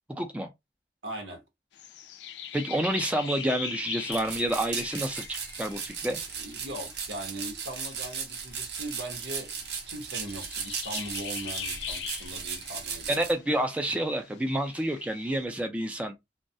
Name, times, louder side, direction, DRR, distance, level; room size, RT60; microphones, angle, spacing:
voice 1, 0.1-0.5 2.5-6.2 13.1-16.1, right 1 dB, 5° right, 0.3 m, -29 dB
voice 2, 1.0-1.4 6.4-13.3, right 1 dB, 90° right, 0.8 m, -40 dB
sound 1, 1.7-15.4, left 9 dB, 75° left, 0.3 m, -43 dB
sound 2, 4.1-13.3, right 6 dB, 60° right, 0.5 m, -37 dB
2.3 x 2.1 x 2.6 m
head